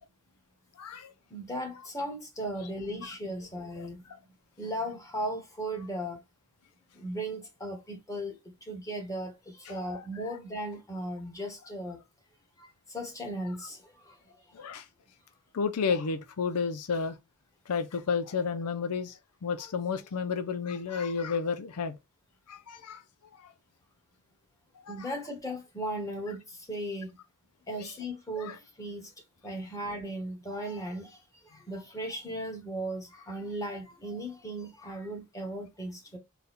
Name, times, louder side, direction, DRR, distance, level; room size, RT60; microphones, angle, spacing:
voice 1, 0.8-1.1 3.8-3.9 9.7-10.0 14.5-14.9 15.5-17.2 17.7-22.0 22.5-23.0 23.4-23.5 24.9-25.1 27.7-27.9 28.4-28.6, left 5 dB, 85° left, 0.5 m, -32 dB
voice 2, 1.3-4.0 4.6-6.2 7.0-8.3 8.7-9.3 9.7-12.0 12.9-13.8 24.9-26.4 26.7-27.2 27.7-29.1 29.4-31.1 31.7-36.2, right 1 dB, 15° left, 1.4 m, -36 dB
4.0 x 2.2 x 4.0 m
head